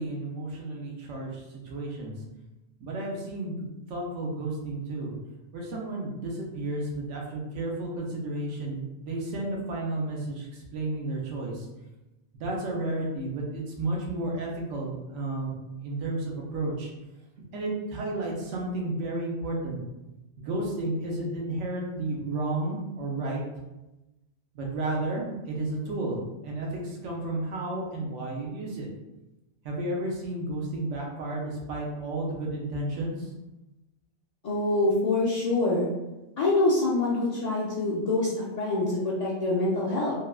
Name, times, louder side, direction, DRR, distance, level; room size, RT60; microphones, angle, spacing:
voice 1, 0.0-2.1 2.8-5.1 5.5-11.7 12.3-16.9 17.5-19.8 20.4-23.4 24.5-28.9 29.6-33.3, right 2 dB, 85° right, -2 dB, 1.0 m, -32 dB
voice 2, 34.4-35.9 36.4-40.1, left 2 dB, 60° left, -7 dB, 0.4 m, -25 dB
3.3 x 2.3 x 2.2 m, 1.0 s
omnidirectional pair, 1.2 m